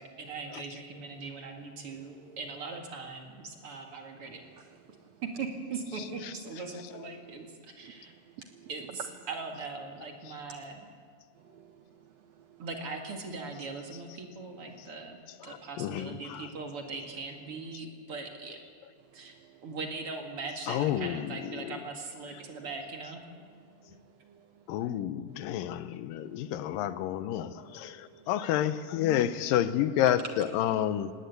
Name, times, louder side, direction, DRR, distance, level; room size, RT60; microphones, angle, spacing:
voice 1, 0.0-4.4 5.2-8.1 8.7-10.9 12.6-15.2 15.4-18.6 19.1-19.3 19.6-23.2, right 4 dB, 45° right, 2.6 m, -40 dB
voice 2, 6.0-6.3 7.0-7.1 10.3-10.4 15.4-16.5 20.7-21.8 24.7-31.1, left 11 dB, 85° left, 2.4 m, -30 dB
voice 3, 7.8-8.7 11.4-12.0 12.4-12.5 19.4-19.5 23.7-24.5 26.2-26.5 27.8-28.3, right 8 dB, 90° right, 1.4 m, -55 dB
18.5 x 18.5 x 8.2 m
omnidirectional pair, 3.9 m